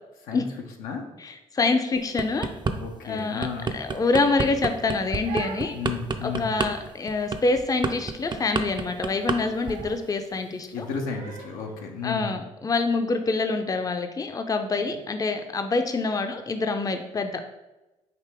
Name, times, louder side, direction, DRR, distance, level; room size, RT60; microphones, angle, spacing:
voice 1, 1.2-2.5 3.0-3.5 3.7-5.7 6.2-10.9 12.0-17.4, left 3 dB, 25° left, 7 dB, 0.5 m, -26 dB
sound 1, 2.0-2.8 3.2-9.4 9.6-9.9, right 4 dB, 30° right, 0.5 m, -28 dB
voice 2, 2.7-3.8 5.7-6.5 10.7-12.4, left 5 dB, 85° left, 2 dB, 0.6 m, -33 dB
Crying sobbing, 4.9-11.7, right 6 dB, 75° right, 0.6 m, -43 dB
4.9 x 2.8 x 3.4 m, 1.0 s
supercardioid pair, 55°, 14 cm